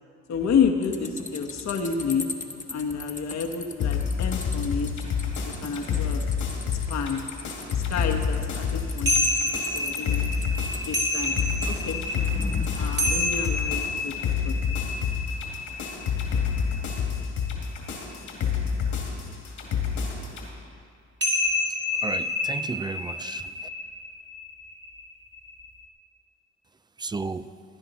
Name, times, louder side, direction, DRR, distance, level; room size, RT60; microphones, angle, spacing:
voice 1, 0.3-2.3 2.7-4.9 5.6-6.2 6.9-7.2 7.9-10.2 10.9-11.3 11.7-12.0 12.7-14.1 14.4-14.9, left 6 dB, 65° left, 3 dB, 1.2 m, -29 dB
sound 1, 0.8-13.5, left 3 dB, 25° left, 1.1 m, -40 dB
sound 2, 3.8-20.5, left 6 dB, 80° left, 2.4 m, -28 dB
sound 3, 9.1-17.7 21.2-25.8, left 2 dB, 35° right, 2.0 m, -29 dB
voice 2, 21.7-23.5 27.0-27.5, right 4 dB, 15° right, 14 dB, 0.4 m, -34 dB
16.5 x 10.0 x 4.2 m, 2.4 s
cardioid pair, 90°, 30 cm